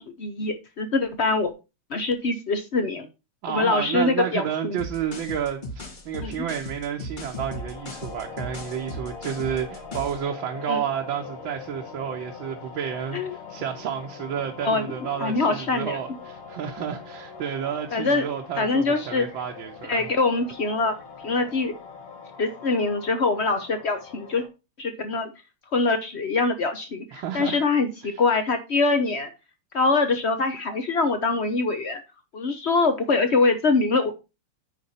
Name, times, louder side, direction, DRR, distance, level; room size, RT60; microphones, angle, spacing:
voice 1, 0.0-1.5 1.9-3.1 3.5-4.8 6.2-6.4 10.7-10.8 13.1-13.3 14.6-14.9 15.2-16.0 17.9-18.2 18.6-19.3 19.9-21.7 22.4-24.4 24.8-25.3 25.7-29.3 29.7-32.0 32.3-34.1, left 3 dB, 60° left, 0.7 m, -24 dB
voice 2, 3.4-20.1 27.1-27.6 28.0-28.2, right 9 dB, 70° right, 1.6 m, -31 dB
sound 1, 4.8-10.2, left 1 dB, 30° left, 0.9 m, -37 dB
sound 2, 7.3-24.5, left 5 dB, 90° left, 2.3 m, -42 dB
9.6 x 4.5 x 4.2 m
omnidirectional pair, 2.4 m